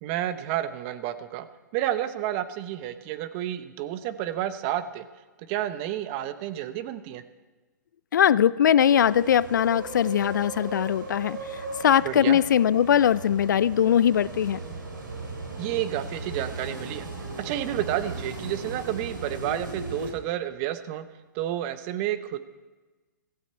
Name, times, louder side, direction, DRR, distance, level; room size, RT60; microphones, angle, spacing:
voice 1, 0.0-1.5 1.7-5.1 5.4-7.2 12.0-12.4 15.6-17.1 17.4-21.0 21.3-22.4, right 12 dB, 35° right, 12 dB, 0.9 m, -30 dB
voice 2, 8.1-14.6, left 9 dB, 70° left, 20 dB, 0.4 m, -21 dB
sound 1, 8.9-20.1, right 3 dB, 85° right, 4.0 m, -37 dB
16.0 x 15.0 x 4.4 m, 1.3 s
hypercardioid pair, 125°, 11 cm